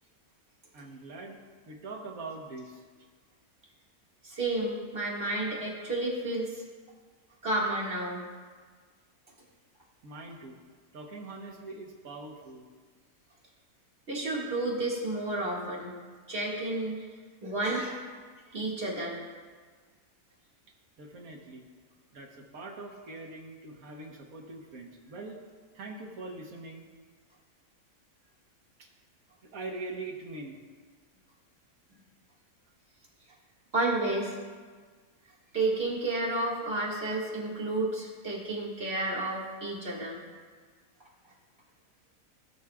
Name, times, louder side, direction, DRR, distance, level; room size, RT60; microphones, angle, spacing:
voice 1, 0.7-1.4 1.7-2.8 10.0-10.6 10.9-12.7 21.0-21.6 22.1-25.4 25.7-26.9 28.8-28.9 29.4-30.6, right 3 dB, 85° right, 1 dB, 1.6 m, -42 dB
voice 2, 4.2-6.6 7.4-8.2 14.1-15.9 16.3-17.0 17.4-18.0 18.5-19.2 33.7-34.4 35.5-40.2, right 2 dB, 45° right, -5 dB, 2.2 m, -31 dB
17.5 x 6.2 x 2.3 m, 1.5 s
omnidirectional pair, 1.5 m